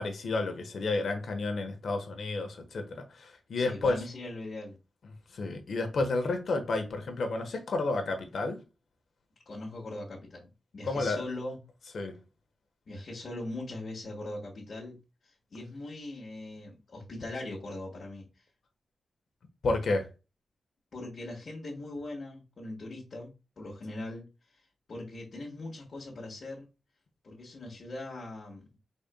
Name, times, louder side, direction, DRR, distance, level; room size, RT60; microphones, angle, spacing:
voice 1, 0.0-2.9 3.2-4.0 5.3-8.6 10.8-11.2 11.9-12.2 19.6-20.1, left 3 dB, 70° left, 1.2 m, -31 dB
voice 2, 3.5-4.8 9.4-11.6 12.9-15.0 15.2-18.4 20.9-24.2 24.5-24.6 24.9-26.7 27.2-28.8, left 2 dB, 55° left, 1.5 m, -41 dB
5.5 x 4.2 x 2.2 m
wide cardioid pair, 135°, 0 cm